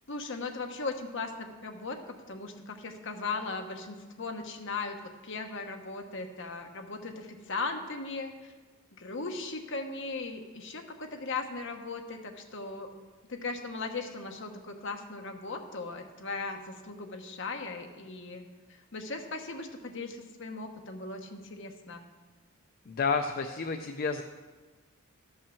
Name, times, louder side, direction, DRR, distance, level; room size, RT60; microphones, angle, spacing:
voice 1, 0.1-8.3 9.0-12.9 13.3-18.4 18.9-22.0, left 3 dB, 60° left, 4 dB, 1.1 m, -38 dB
voice 2, 22.9-24.2, left 5 dB, 45° left, 6 dB, 0.4 m, -30 dB
13.0 x 5.6 x 7.0 m, 1.3 s
head